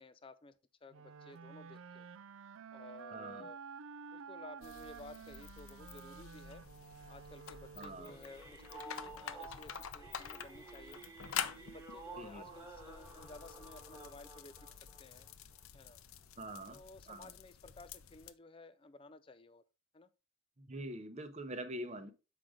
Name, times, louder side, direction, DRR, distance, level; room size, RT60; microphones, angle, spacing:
voice 1, 0.0-2.1 2.7-3.6 4.1-6.7 7.1-11.0 11.4-15.3 15.7-16.0 16.7-19.6 19.9-20.1, left 2 dB, 25° left, 0.4 m, -55 dB
sound 1, 0.9-8.4, right 6 dB, 65° right, 0.4 m, -51 dB
voice 2, 3.1-3.5 7.8-8.1 12.2-12.5 16.4-16.8 17.1-17.3 20.6-22.1, right 1 dB, 30° right, 0.8 m, -44 dB
sound 2, 4.6-18.3, left 8 dB, 70° left, 0.6 m, -48 dB
sound 3, 8.0-15.6 16.1-16.3 16.8-16.9 17.1-17.2, right 3 dB, 15° right, 1.3 m, -52 dB
7.5 x 5.0 x 3.7 m
head